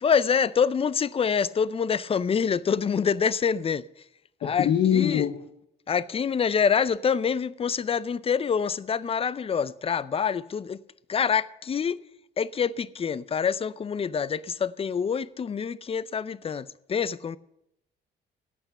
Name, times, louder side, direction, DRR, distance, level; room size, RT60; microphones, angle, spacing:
voice 1, 0.0-3.8 4.4-5.3 5.9-10.8 11.1-12.0 12.4-17.4, left 6 dB, 30° left, 0.4 m, -26 dB
voice 2, 4.4-5.3, left 9 dB, 65° left, 1.0 m, -23 dB
16.5 x 5.9 x 6.6 m
cardioid pair, 90°, 20 cm